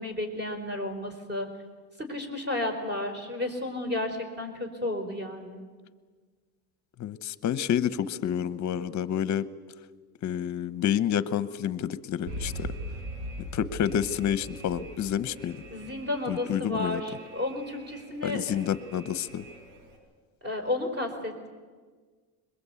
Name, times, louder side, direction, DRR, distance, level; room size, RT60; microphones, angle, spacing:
voice 1, 0.0-1.5 2.0-5.6 15.7-18.6 20.4-21.5, left 1 dB, 20° right, 7 dB, 4.4 m, -32 dB
voice 2, 7.0-9.4 10.2-12.7 13.5-15.6 16.3-17.0 18.2-19.4, left 9 dB, 40° left, 15 dB, 0.9 m, -29 dB
Alarm, 12.3-20.0, right 1 dB, 70° right, 6.3 m, -41 dB
22.0 x 21.0 x 8.3 m, 1.5 s
cardioid pair, 125°, 47 cm